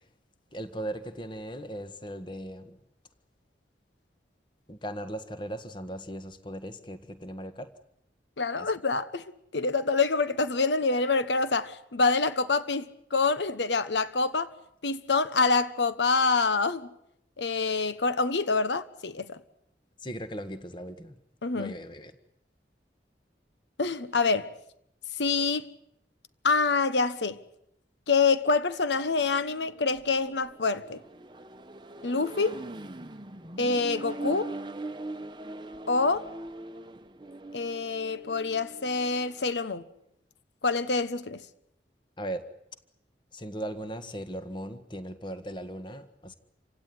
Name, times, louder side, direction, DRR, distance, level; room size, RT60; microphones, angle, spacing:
voice 1, 0.5-2.8 4.7-7.7 8.6-8.7 20.0-21.2 21.5-22.1 42.2-42.5 43.3-46.3, right 1 dB, 25° left, 1.6 m, -38 dB
voice 2, 8.4-9.2 9.5-14.5 14.8-16.9 17.4-19.4 21.4-21.7 23.8-24.5 25.2-25.6 26.4-27.4 28.1-31.0 32.0-32.6 33.6-34.5 35.9-36.3 37.5-39.8 40.6-41.4, left 4 dB, 90° left, 1.2 m, -26 dB
Accelerating revving vroom, 29.0-39.4, right 2 dB, 25° right, 0.9 m, -41 dB
28.5 x 16.5 x 9.7 m
head